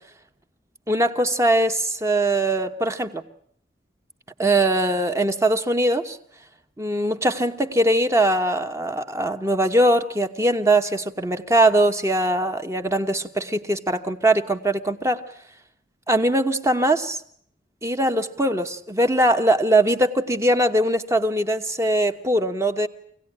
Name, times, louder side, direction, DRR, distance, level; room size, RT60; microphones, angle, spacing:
voice 1, 0.9-3.2 4.4-6.2 6.8-15.2 16.1-17.2 17.8-22.9, right 1 dB, 15° right, 7 dB, 1.1 m, -21 dB
25.0 x 17.5 x 9.8 m, 0.65 s
head